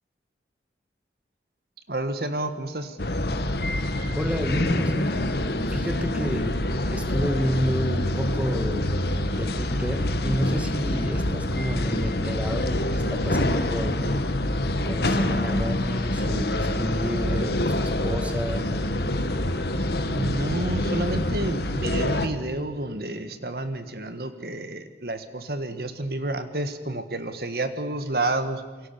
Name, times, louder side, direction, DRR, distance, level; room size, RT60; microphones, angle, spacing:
voice 1, 1.9-3.0 19.7-28.6, right 2 dB, 60° right, 9 dB, 1.6 m, -30 dB
sound 1, 3.0-22.3, left 1 dB, 65° left, 1.7 m, -26 dB
voice 2, 4.1-5.2 5.7-6.5 6.9-8.9 9.3-14.3 14.9-18.7, equal, 5° right, 5 dB, 2.0 m, -30 dB
27.5 x 23.5 x 7.0 m, 1.3 s
head